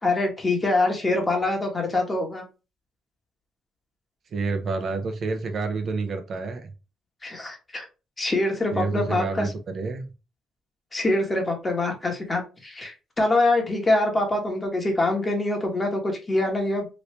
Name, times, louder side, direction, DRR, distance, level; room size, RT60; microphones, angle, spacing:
voice 1, 0.0-2.4 7.2-7.9 8.2-9.5 10.9-16.9, left 2 dB, 25° left, 2 dB, 1.2 m, -24 dB
voice 2, 4.3-6.7 8.7-10.0, right 4 dB, 55° right, 6 dB, 0.7 m, -28 dB
3.1 x 2.7 x 3.2 m, 0.30 s
cardioid pair, 90°, 0 cm